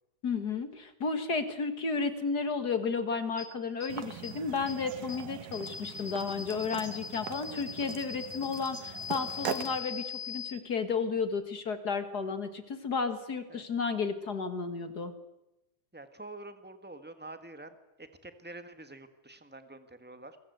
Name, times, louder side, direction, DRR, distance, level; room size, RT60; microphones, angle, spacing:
voice 1, 0.2-15.1, left 4 dB, 40° left, 10 dB, 1.8 m, -33 dB
sound 1, 3.4-3.5 3.8-3.9 4.2-4.3 4.7-4.8 5.1-5.2 5.5-10.5, left 7 dB, 70° left, 6.2 m, -40 dB
sound 2, 3.9-9.8, right 10 dB, 85° right, 2.9 m, -42 dB
voice 2, 15.9-20.4, right 2 dB, 10° right, 9 dB, 0.5 m, -47 dB
27.0 x 23.0 x 8.1 m, 0.94 s
omnidirectional pair, 3.5 m